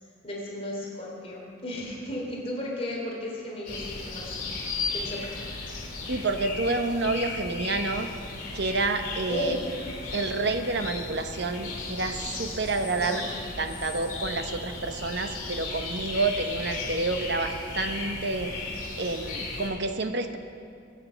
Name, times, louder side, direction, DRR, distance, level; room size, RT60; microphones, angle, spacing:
voice 1, 0.2-4.3 4.9-5.3 9.3-9.6 12.9-13.2, left 1 dB, 30° left, -3 dB, 3.0 m, -34 dB
sound 1, 3.7-19.7, left 3 dB, 50° left, 3.9 m, -35 dB
voice 2, 6.1-8.1 8.5-9.6 10.1-13.2 13.6-18.5 19.0-20.4, right 3 dB, 55° right, 7 dB, 1.0 m, -29 dB
23.5 x 8.6 x 5.7 m, 2.4 s
head